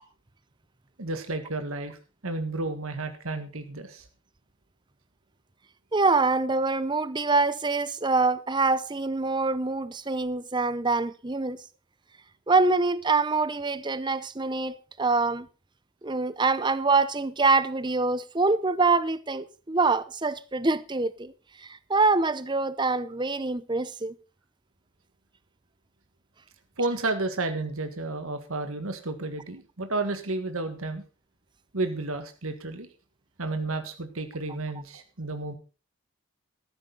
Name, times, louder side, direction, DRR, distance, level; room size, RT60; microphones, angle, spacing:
voice 1, 1.0-4.1 26.8-31.0 31.7-32.9 33.4-35.5, right 2 dB, 75° right, 1.7 m, -31 dB
voice 2, 5.9-11.6 12.5-15.5 16.0-21.3 21.6-24.1, right 3 dB, 20° right, 0.7 m, -25 dB
14.0 x 12.5 x 4.0 m
head